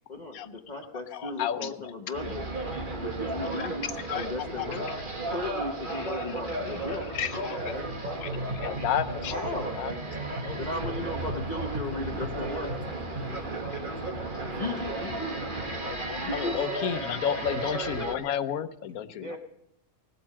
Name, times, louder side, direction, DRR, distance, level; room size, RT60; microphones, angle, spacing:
voice 1, 0.1-2.4 3.0-3.9 4.1-4.9 5.3-7.1 7.6-7.9 9.3-9.7 10.6-12.7 14.5-15.3 16.2-17.0 19.2-19.4, left 2 dB, 30° left, 2 dB, 1.1 m, -35 dB
voice 2, 1.1-1.9 3.6-4.7 5.9-6.3 7.1-7.6 8.2-8.3 8.6-9.9 10.4-10.6 15.8-19.4, left 9 dB, 70° left, 11 dB, 1.2 m, -32 dB
sound 1, 2.1-18.1, right 2 dB, 35° right, 1.6 m, -34 dB
voice 3, 7.3-8.1 11.2-15.1, left 1 dB, 10° left, 2 dB, 1.3 m, -47 dB
18.5 x 7.9 x 7.4 m, 0.80 s
omnidirectional pair, 1.6 m